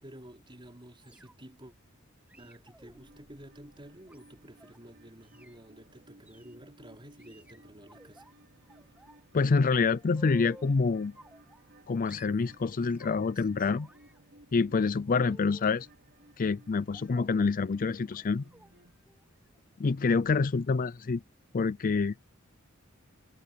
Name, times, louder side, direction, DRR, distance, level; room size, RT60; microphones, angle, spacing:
voice 1, 0.0-1.7 2.4-8.3 13.3-13.5 15.3-15.5, right 1 dB, 25° right, 4.7 m, -51 dB
sound 1, 1.0-1.6 2.3-4.8 5.2-5.6 6.3-6.6 7.2-8.3 8.7-9.2 9.5-10.8 11.1-11.8 12.0-13.4 13.7-15.8 16.9-17.4 18.1-18.2 18.5-18.7 19.0-19.2 19.5-19.6, right 1 dB, 5° right, 2.2 m, -56 dB
sound 2, 2.8-18.9, right 1 dB, 55° right, 4.2 m, -60 dB
voice 2, 9.3-11.1 11.9-13.9 14.5-15.9 16.4-18.4 19.8-21.2 21.5-22.1, left 4 dB, 40° left, 0.4 m, -27 dB
head